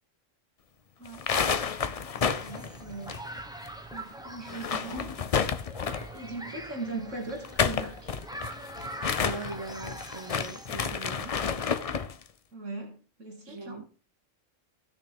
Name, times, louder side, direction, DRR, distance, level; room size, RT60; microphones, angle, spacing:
sound 1, 1.1-3.7 3.9-4.0 4.4-6.2 7.3-12.1, left 6 dB, 55° left, 0.4 m, -30 dB
sound 2, 2.2-10.7, right 1 dB, 5° right, 1.0 m, -43 dB
voice 1, 2.4-3.1 3.9-5.2 6.1-8.1 12.5-13.8, right 2 dB, 70° right, 2.5 m, -39 dB
voice 2, 9.2-11.3 13.5-13.9, right 3 dB, 35° right, 0.5 m, -40 dB
16.0 x 6.2 x 3.5 m
omnidirectional pair, 1.4 m